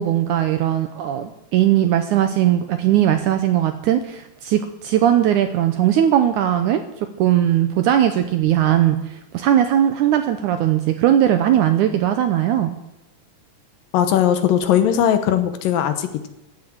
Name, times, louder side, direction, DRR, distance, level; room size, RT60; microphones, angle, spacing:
voice 1, 0.0-6.8 7.2-12.7, right 11 dB, 80° right, 8 dB, 1.8 m, -19 dB
voice 2, 13.9-16.3, left 10 dB, 75° left, 9 dB, 2.6 m, -19 dB
15.0 x 7.7 x 7.4 m, 0.91 s
omnidirectional pair, 4.2 m